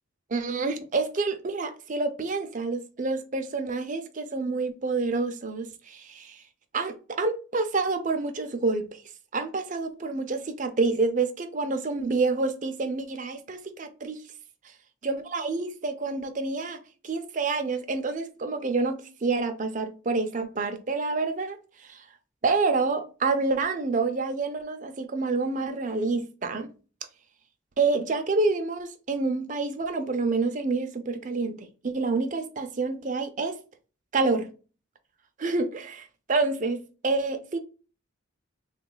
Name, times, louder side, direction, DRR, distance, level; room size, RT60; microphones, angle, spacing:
voice 1, 0.3-6.4 6.7-9.0 9.3-14.2 15.0-22.0 22.4-26.7 27.8-33.6 34.1-34.5 35.4-37.6, right 3 dB, 40° right, 0.5 m, -28 dB
3.5 x 2.4 x 3.8 m
head